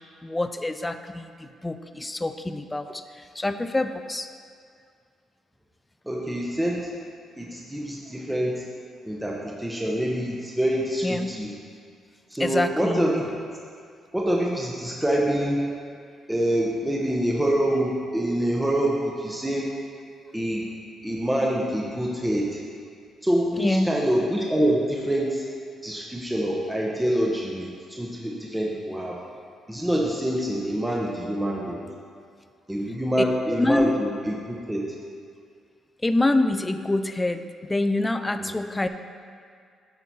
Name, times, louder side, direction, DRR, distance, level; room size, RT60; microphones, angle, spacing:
voice 1, 0.2-4.3 11.0-11.3 12.4-13.0 23.6-23.9 33.6-34.0 36.0-38.9, left 2 dB, 15° left, 9 dB, 0.4 m, -26 dB
voice 2, 6.1-6.9 7.4-8.6 9.0-11.5 12.3-13.2 14.1-15.7 16.3-19.7 20.3-20.7 21.0-22.6 23.2-25.4 25.8-29.2 29.7-31.8 32.7-34.9 38.4-38.5, right 1 dB, 5° right, -3 dB, 0.8 m, -26 dB
8.8 x 4.4 x 4.2 m, 2.2 s
cardioid pair, 90°, 0 cm